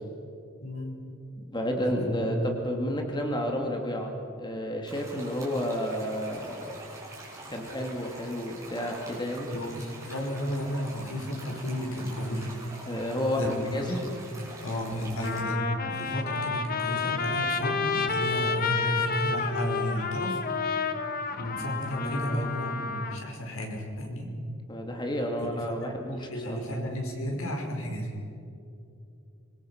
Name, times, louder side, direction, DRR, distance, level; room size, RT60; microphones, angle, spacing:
voice 1, 0.6-1.0 1.8-2.2 9.5-12.6 13.4-14.2 14.6-20.4 21.4-24.3 25.4-25.5 25.8-28.1, equal, 80° left, 1 dB, 5.1 m, -33 dB
voice 2, 1.5-6.7 7.5-9.5 12.9-14.0 22.1-22.5 24.7-26.6, equal, 20° left, 2 dB, 2.1 m, -31 dB
sound 1, 4.8-15.4, right 2 dB, 15° right, 6.7 m, -45 dB
Trumpet, 14.5-14.6 15.2-23.2, left 4 dB, 45° left, 1.3 m, -30 dB
25.5 x 23.5 x 5.8 m, 2.6 s
head